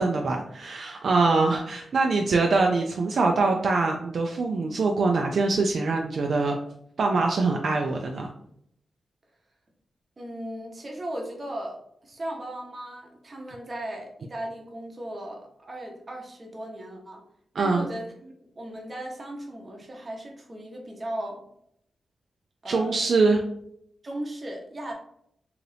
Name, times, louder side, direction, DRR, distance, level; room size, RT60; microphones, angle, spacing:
voice 1, 0.0-6.6 7.0-8.3 17.5-17.9 22.7-23.4, right 3 dB, 65° right, 1 dB, 0.3 m, -23 dB
voice 2, 10.2-17.2 17.6-21.4 22.6-23.1 24.0-24.9, right 1 dB, 35° right, 0 dB, 0.8 m, -37 dB
2.8 x 2.5 x 3.2 m, 0.71 s
cardioid pair, 90°, 0 cm